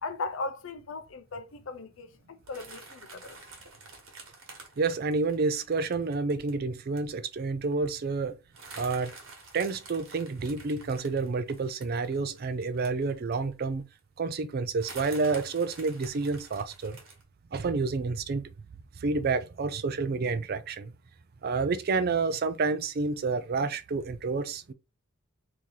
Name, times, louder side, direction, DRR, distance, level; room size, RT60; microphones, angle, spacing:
voice 1, 0.0-3.4, left 3 dB, 65° left, 0.5 m, -38 dB
sound 1, 2.5-6.5 7.0-7.1 7.4-7.5 7.7-8.0 8.5-13.5 14.0-14.1 14.8-17.2, right 3 dB, 70° right, 1.3 m, -48 dB
voice 2, 4.8-8.4 8.8-9.1 9.5-13.8 14.2-17.0 17.5-18.5 19.0-20.9 21.4-24.7, right 4 dB, 50° right, 0.4 m, -29 dB
3.1 x 2.8 x 3.7 m
head